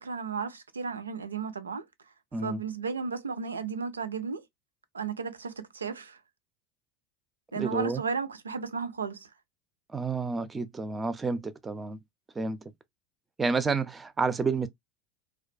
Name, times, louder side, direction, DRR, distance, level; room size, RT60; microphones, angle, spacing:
voice 1, 0.0-1.8 2.4-4.4 4.9-6.2 7.5-9.3, right 5 dB, 90° right, 0.4 m, -34 dB
voice 2, 7.6-8.0 9.9-12.0 12.4-12.6 13.4-14.7, right 4 dB, 20° right, 0.5 m, -30 dB
2.3 x 2.2 x 2.5 m
hypercardioid pair, 80°, 0 cm